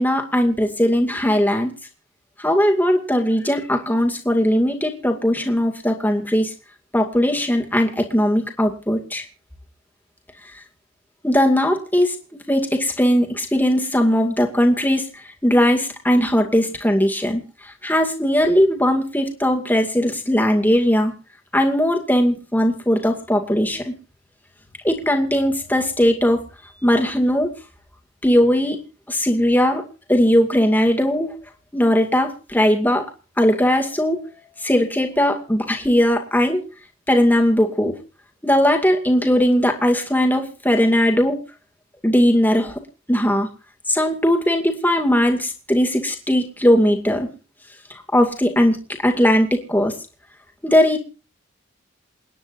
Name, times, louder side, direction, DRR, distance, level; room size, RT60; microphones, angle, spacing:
voice 1, 0.0-1.7 2.4-6.5 6.9-9.2 11.2-12.2 12.5-15.1 15.4-17.4 17.8-21.1 21.5-23.9 24.8-26.4 26.8-27.5 28.2-28.8 29.1-29.8 30.1-31.3 31.7-33.1 33.4-34.2 34.6-36.6 37.1-37.9 38.4-41.4 42.0-42.8 43.1-43.5 43.9-47.3 48.1-48.8 49.0-49.9 50.6-51.0, equal, 10° left, 3 dB, 2.3 m, -19 dB
28.5 x 10.0 x 2.7 m, 0.34 s
head